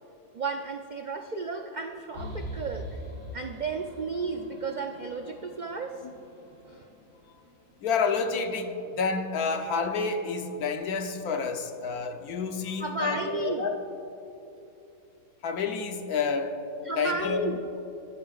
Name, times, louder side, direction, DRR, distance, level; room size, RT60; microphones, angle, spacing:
voice 1, 0.3-3.0 3.3-6.0 6.6-6.9 12.8-13.7 16.8-17.7, right 3 dB, 70° right, 4 dB, 0.4 m, -33 dB
sound 1, 2.1-7.7, equal, 70° left, 2.7 m, -43 dB
voice 2, 7.8-13.8 15.4-16.6 17.0-17.5, left 5 dB, 85° left, 6 dB, 1.4 m, -29 dB
21.5 x 12.5 x 2.5 m, 2.9 s
omnidirectional pair, 1.5 m